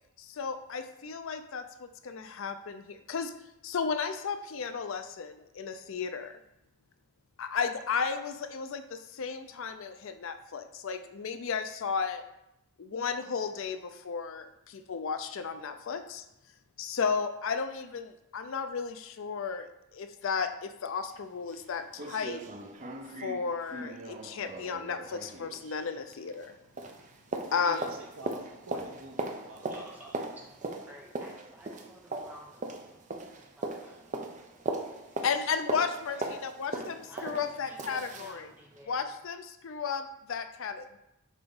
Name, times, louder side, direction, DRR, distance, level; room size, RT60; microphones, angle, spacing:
voice 1, 0.3-3.3 3.6-6.4 7.4-12.2 12.8-16.2 16.8-19.7 19.9-22.4 23.2-26.5 27.5-27.8 35.2-38.5 38.9-41.0, left 5 dB, 60° left, 9 dB, 0.4 m, -34 dB
sound 1, 21.1-21.2 21.5-21.6 22.0-26.5 26.8-38.4 38.8-38.9, right 2 dB, 35° right, 0.5 m, -39 dB
voice 2, 27.5-30.0, right 1 dB, 65° right, 2 dB, 1.0 m, -48 dB
voice 3, 29.7-30.5 30.8-33.0 33.3-35.3 36.1-36.3 36.7-39.1, right 1 dB, 5° right, -2 dB, 0.9 m, -53 dB
7.3 x 2.9 x 5.3 m, 0.86 s
head